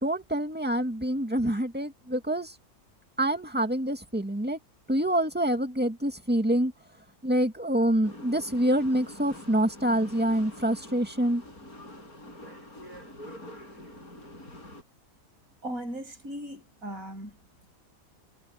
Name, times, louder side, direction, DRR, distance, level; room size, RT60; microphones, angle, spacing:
voice 1, 0.0-2.5 3.2-4.6 4.9-6.7 7.2-11.4, right 1 dB, 5° right, 2.1 m, -26 dB
sound 1, 8.0-14.8, left 1 dB, 80° left, 8.6 m, -45 dB
voice 2, 15.6-17.3, right 1 dB, 70° right, 7.3 m, -37 dB
omnidirectional pair, 1.5 m